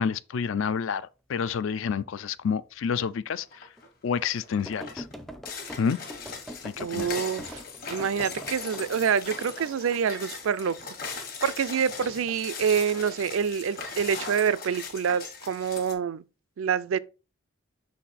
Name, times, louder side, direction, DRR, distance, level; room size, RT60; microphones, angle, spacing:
voice 1, 0.0-3.4 4.0-5.0 5.8-6.0 6.6-7.2, left 6 dB, 70° left, 0.4 m, -29 dB
sound 1, 3.1-3.2 3.8-3.9 4.7-8.9 9.3-10.0 10.6-10.9, equal, ahead, 0.4 m, -43 dB
sound 2, 3.5-3.9 4.3-15.9, left 4 dB, 45° left, 1.2 m, -39 dB
voice 2, 6.8-7.6 7.9-10.8 11.1-16.2 16.6-17.0, right 7 dB, 75° right, 0.4 m, -27 dB
5.7 x 4.2 x 4.1 m
head